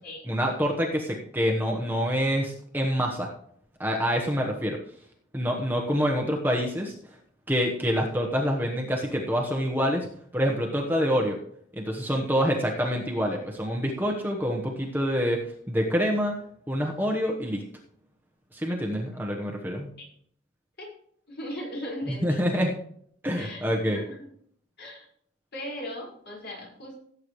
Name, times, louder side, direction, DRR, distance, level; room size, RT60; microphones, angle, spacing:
voice 1, 0.2-3.3 3.8-4.8 5.3-6.9 7.5-10.1 10.3-11.4 11.7-16.3 16.7-17.6 18.5-19.9 22.2-22.8 23.2-24.0, equal, 10° right, 0 dB, 1.1 m, -26 dB
voice 2, 18.8-19.2 20.0-20.1 20.8-20.9 21.3-22.5 23.4-24.3 24.8-25.1 25.5-26.9, equal, 55° left, -2 dB, 5.3 m, -38 dB
17.0 x 8.3 x 3.2 m, 0.64 s
head